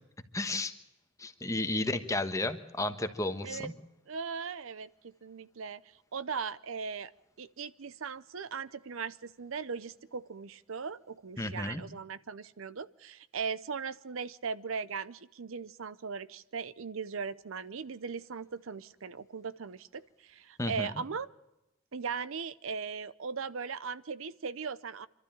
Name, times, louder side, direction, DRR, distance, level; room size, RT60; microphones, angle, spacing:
voice 1, 0.3-0.7 1.2-3.7 11.4-11.8 20.6-20.9, left 2 dB, 15° left, 8 dB, 1.2 m, -33 dB
voice 2, 4.1-5.8 6.1-7.1 7.4-21.3 21.9-25.1, right 5 dB, 70° right, 16 dB, 0.6 m, -38 dB
26.0 x 13.0 x 8.8 m, 0.95 s
head